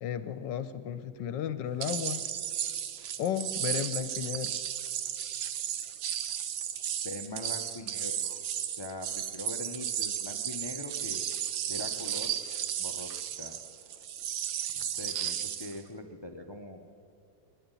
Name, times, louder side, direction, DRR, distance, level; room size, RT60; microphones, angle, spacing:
voice 1, 0.0-2.2 3.2-4.5, left 9 dB, 75° left, 12 dB, 1.3 m, -34 dB
sound 1, 1.8-15.8, right 10 dB, 80° right, 1.6 m, -34 dB
voice 2, 7.0-8.4 8.8-11.2 11.7-12.4 12.8-13.1 13.4-13.6 14.7-16.9, left 2 dB, 40° left, 5 dB, 0.3 m, -42 dB
20.5 x 13.0 x 9.7 m, 2.5 s
omnidirectional pair, 2.0 m